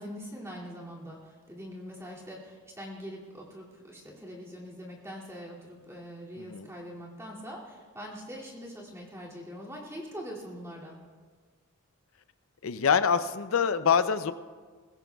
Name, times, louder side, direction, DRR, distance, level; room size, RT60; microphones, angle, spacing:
voice 1, 0.0-11.0, equal, 15° right, -4 dB, 2.5 m, -43 dB
voice 2, 6.4-6.7 12.6-14.3, left 6 dB, 65° left, 12 dB, 0.5 m, -25 dB
22.0 x 16.0 x 2.3 m, 1.5 s
head